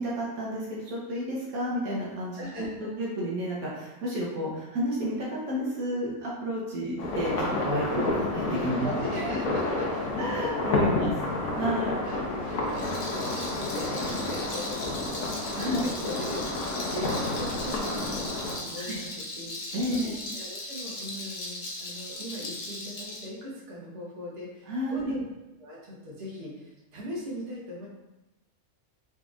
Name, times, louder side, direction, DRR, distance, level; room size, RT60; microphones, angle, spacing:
voice 1, 0.0-8.9 10.2-11.1 11.5-11.9 15.5-15.8 18.8-19.0 19.7-20.2 24.7-25.2, equal, 75° right, -6 dB, 1.3 m, -31 dB
voice 2, 2.4-2.9 8.8-10.1 12.0-12.2 12.5-25.2 25.6-27.9, equal, 55° right, -6 dB, 1.2 m, -40 dB
sound 1, 7.0-18.6, left 2 dB, 70° left, 1.2 m, -30 dB
Rattle, 12.6-23.3, left 2 dB, 55° left, 0.5 m, -38 dB
4.0 x 3.3 x 2.4 m, 1.0 s
omnidirectional pair, 1.5 m